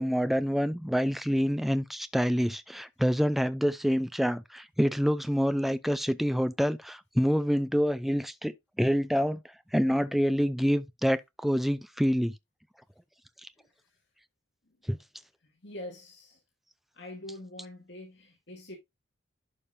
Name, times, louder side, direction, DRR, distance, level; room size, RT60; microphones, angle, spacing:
voice 1, 0.0-9.4 9.7-12.3 13.4-13.5 14.9-15.0, equal, ahead, 0.4 m, -27 dB
voice 2, 13.6-14.0 15.4-16.4 16.9-18.7, left 1 dB, 60° left, 2.2 m, -45 dB
11.0 x 5.2 x 2.7 m
head